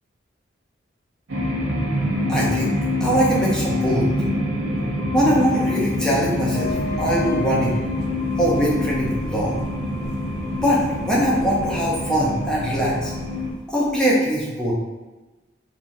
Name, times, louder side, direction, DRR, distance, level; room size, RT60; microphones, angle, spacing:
sound 1, 1.3-13.5, left 1 dB, 80° right, 0.7 m, -25 dB
voice 1, 2.3-2.7 3.0-4.1 5.1-7.8 8.4-9.6 10.5-13.1 13.7-14.7, equal, 5° left, -6 dB, 0.6 m, -22 dB
sound 2, 6.5-13.9, left 3 dB, 55° left, 0.5 m, -36 dB
3.2 x 2.3 x 2.6 m, 1.2 s
head